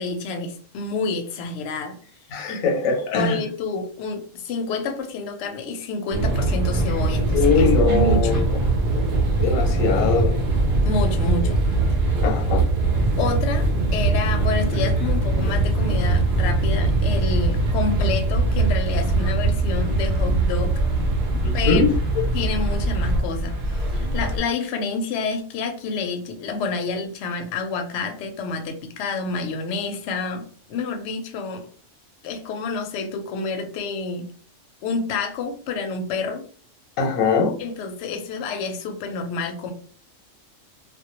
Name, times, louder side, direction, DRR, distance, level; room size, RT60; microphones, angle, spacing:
voice 1, 0.0-2.0 2.5-2.6 3.1-8.5 10.8-11.6 13.2-20.8 21.3-21.8 22.3-31.7 32.2-34.3 34.8-36.4 37.6-39.7, left 4 dB, 70° left, 0.8 m, -28 dB
voice 2, 2.3-3.4 7.3-8.4 9.4-10.4 12.2-12.6 21.4-21.9 37.0-37.5, left 4 dB, 90° left, 1.1 m, -21 dB
sound 1, 6.1-24.4, right 2 dB, 55° right, 0.6 m, -21 dB
2.2 x 2.1 x 2.8 m
omnidirectional pair, 1.4 m